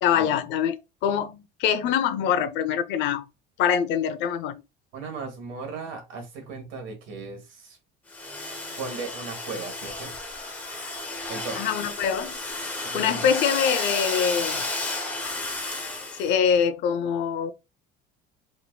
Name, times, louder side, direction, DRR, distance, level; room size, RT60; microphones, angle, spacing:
voice 1, 0.0-3.3 3.6-4.6 11.6-12.4 12.9-14.7 16.1-17.5, left 8 dB, 60° left, 0.6 m, -24 dB
voice 2, 4.9-7.8 8.8-10.1 11.3-11.7 12.8-13.4, right 4 dB, 70° right, 1.3 m, -37 dB
Domestic sounds home sounds, 8.1-16.3, left 2 dB, 10° left, 0.6 m, -32 dB
4.4 x 2.5 x 2.2 m
cardioid pair, 180°, 21 cm